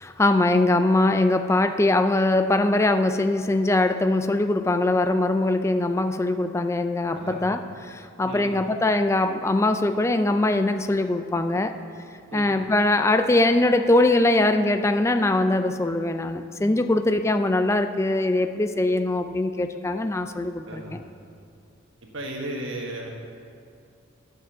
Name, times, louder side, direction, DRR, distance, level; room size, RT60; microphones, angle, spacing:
voice 1, 0.0-11.7 12.3-21.0, left 2 dB, 15° left, 8 dB, 0.3 m, -22 dB
voice 2, 7.1-7.4 8.2-8.5 12.3-12.6 20.7-21.0 22.0-23.1, right 1 dB, 65° right, 0 dB, 1.4 m, -35 dB
9.5 x 6.7 x 7.3 m, 2.4 s
head